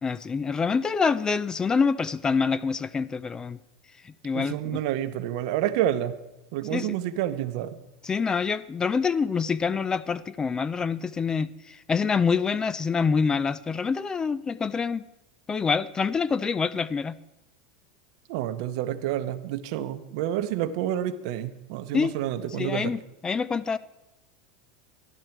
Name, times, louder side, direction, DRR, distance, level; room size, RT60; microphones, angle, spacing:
voice 1, 0.0-3.6 4.2-4.8 6.7-6.9 8.0-15.0 15.5-17.2 21.9-22.1 22.6-23.8, left 5 dB, 20° left, 18 dB, 0.4 m, -26 dB
voice 2, 4.3-6.2 6.5-7.8 18.3-22.9, right 11 dB, 65° right, 11 dB, 0.8 m, -29 dB
12.5 x 11.0 x 4.5 m, 0.94 s
supercardioid pair, 120°, 4 cm